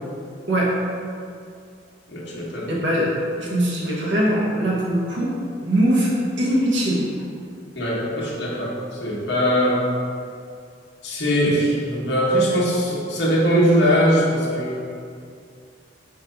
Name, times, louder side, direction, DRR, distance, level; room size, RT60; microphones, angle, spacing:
voice 1, 2.1-2.7 7.7-9.9 11.0-14.8, equal, 70° left, -5 dB, 1.4 m, -21 dB
voice 2, 2.7-5.3 5.6-7.0, equal, 75° right, -4 dB, 1.4 m, -21 dB
5.2 x 3.4 x 5.4 m, 2.4 s
head